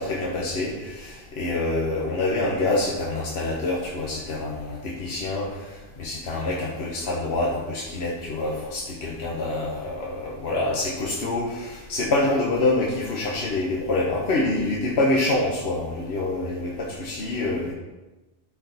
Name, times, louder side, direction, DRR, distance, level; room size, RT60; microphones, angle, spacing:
voice 1, 0.0-17.7, left 2 dB, 80° left, -3 dB, 1.4 m, -26 dB
12.0 x 5.0 x 4.1 m, 1.1 s
omnidirectional pair, 1.1 m